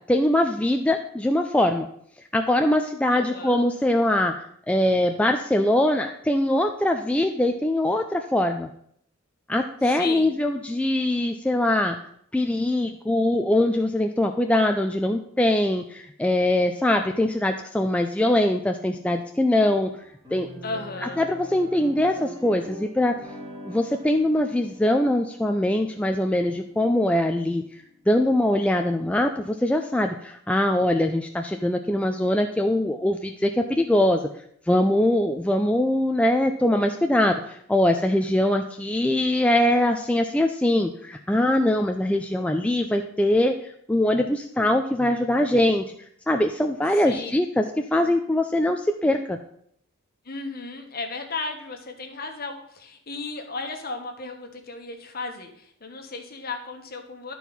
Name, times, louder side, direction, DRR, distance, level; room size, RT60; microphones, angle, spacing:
voice 1, 0.0-1.9 2.3-8.7 9.5-12.0 12.3-19.9 20.3-20.5 21.2-23.2 23.7-34.2 34.7-45.8 46.3-49.4, left 1 dB, 5° left, 4 dB, 0.3 m, -22 dB
voice 2, 3.1-3.6 9.8-10.3 20.6-21.2 46.9-47.3 50.2-57.3, left 3 dB, 45° left, 4 dB, 1.2 m, -35 dB
sound 1, 19.5-28.0, equal, 20° right, 3.3 m, -44 dB
11.0 x 4.6 x 5.4 m, 0.68 s
head